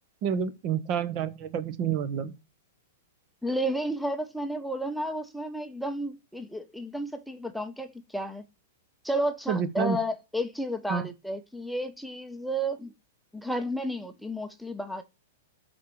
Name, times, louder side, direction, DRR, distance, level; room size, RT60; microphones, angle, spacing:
voice 1, 0.2-2.4 9.5-10.0 10.9-11.1, right 7 dB, 40° right, 1.2 m, -29 dB
voice 2, 3.4-8.4 9.0-12.9 13.3-15.0, equal, ahead, 0.8 m, -32 dB
13.0 x 4.4 x 4.8 m
hypercardioid pair, 115°, 0 cm